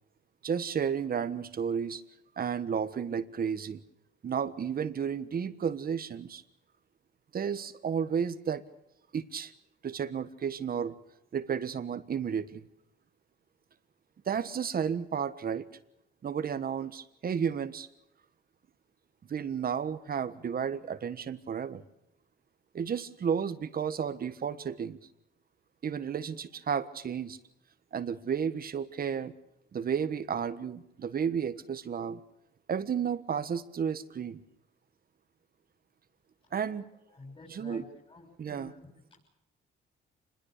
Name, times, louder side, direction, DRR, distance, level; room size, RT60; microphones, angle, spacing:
voice 1, 0.4-2.0 2.4-3.8 4.2-6.4 7.3-8.6 9.1-9.5 9.8-10.9 11.3-12.6 14.3-15.6 16.2-17.9 19.3-21.8 22.7-25.0 25.8-27.4 27.9-29.3 29.7-32.2 32.7-34.4 36.5-36.9 37.5-37.8 38.4-38.7, right 7 dB, 50° right, 13 dB, 1.5 m, -32 dB
voice 2, 37.1-38.8, left 2 dB, 25° left, -1 dB, 6.9 m, -50 dB
26.0 x 21.0 x 6.7 m, 0.82 s
cardioid pair, 90°, 20 cm